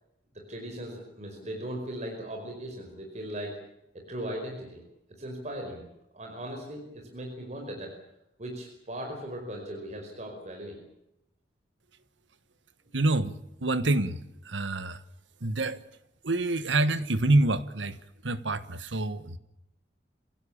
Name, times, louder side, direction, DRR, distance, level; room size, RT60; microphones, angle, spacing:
voice 1, 0.5-3.6 3.9-4.8 5.2-5.9 6.1-7.9 8.4-10.8, right 1 dB, 40° right, 5.1 m, -38 dB
voice 2, 12.9-14.2 14.4-15.0 15.4-15.8 16.2-18.0 18.2-19.4, right 2 dB, 90° right, 1.5 m, -26 dB
26.0 x 16.5 x 8.7 m
head